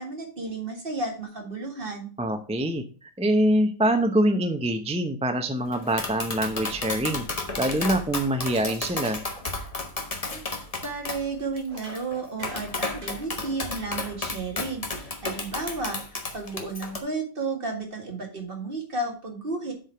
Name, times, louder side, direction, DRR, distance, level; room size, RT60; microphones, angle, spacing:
voice 1, 0.0-2.1 10.3-10.4 10.8-19.7, right 3 dB, 40° right, 2 dB, 2.1 m, -33 dB
voice 2, 2.2-7.3 7.6-9.2, right 1 dB, 5° right, 6 dB, 0.5 m, -24 dB
Tap, 5.7-17.0, left 3 dB, 30° left, 1.2 m, -33 dB
sound 1, 7.7-8.2 8.5-8.9 9.3-9.6 9.9-10.1 11.7-13.3 13.6-14.1, right 1 dB, 70° right, 3.7 m, -48 dB
7.6 x 5.1 x 5.7 m, 0.37 s
omnidirectional pair, 1.4 m